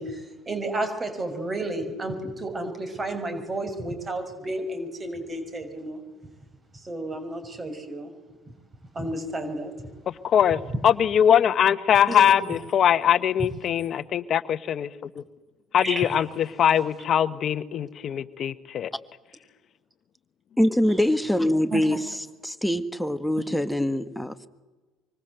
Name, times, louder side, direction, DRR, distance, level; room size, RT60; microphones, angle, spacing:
voice 1, 0.0-6.0 6.7-8.1 8.9-9.7 12.1-12.3 15.8-16.1 21.7-21.9, right 2 dB, 25° right, 7 dB, 6.4 m, -32 dB
voice 2, 10.1-14.9 15.2-15.3 15.7-18.9, left 9 dB, 50° left, 14 dB, 1.2 m, -22 dB
voice 3, 20.6-22.0 22.4-24.5, left 1 dB, 5° left, 10 dB, 1.8 m, -23 dB
25.0 x 25.0 x 8.0 m, 1.2 s
hypercardioid pair, 75°, 0 cm